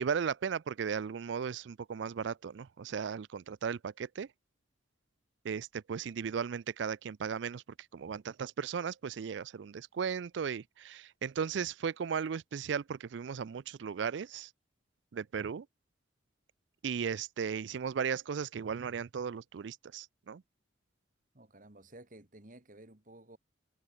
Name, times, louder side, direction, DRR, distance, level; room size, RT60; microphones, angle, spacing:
voice 1, 0.0-4.3 5.4-7.6 7.9-14.5 15.1-15.7 16.8-20.4, right 6 dB, 70° right, 0.4 m, -36 dB
voice 2, 21.3-23.4, right 1 dB, 45° right, 2.3 m, -54 dB
head